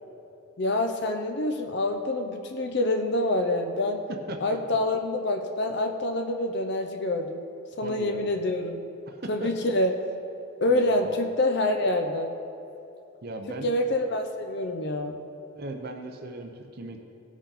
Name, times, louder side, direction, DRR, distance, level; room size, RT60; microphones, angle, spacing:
voice 1, 0.6-4.0 4.4-7.4 7.8-8.8 9.3-9.9 10.6-12.3 13.6-15.2, left 1 dB, 55° left, 4 dB, 0.7 m, -26 dB
voice 2, 4.3-4.6 7.8-8.3 9.1-9.5 10.7-11.2 13.2-13.7 15.6-17.0, right 2 dB, 45° right, 4 dB, 0.7 m, -37 dB
17.0 x 6.2 x 4.1 m, 2.8 s
head